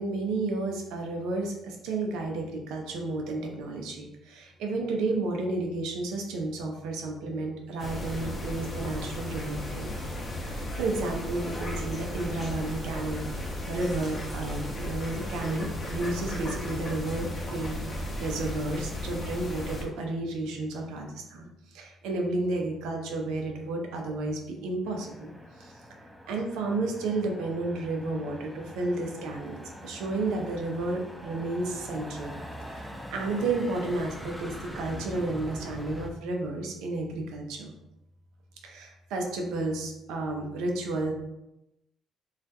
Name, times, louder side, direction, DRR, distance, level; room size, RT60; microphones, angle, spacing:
voice 1, 0.0-9.9 10.5-13.3 13.7-25.3 25.6-25.8 26.3-32.4 32.7-37.7 38.6-41.1, right 2 dB, 80° right, 2 dB, 0.4 m, -32 dB
sound 1, 7.8-19.8, left 1 dB, 35° left, 0.6 m, -35 dB
Motor vehicle (road), 24.9-36.1, equal, ahead, 0.4 m, -43 dB
2.3 x 2.1 x 2.6 m, 0.90 s
supercardioid pair, 60°, 0 cm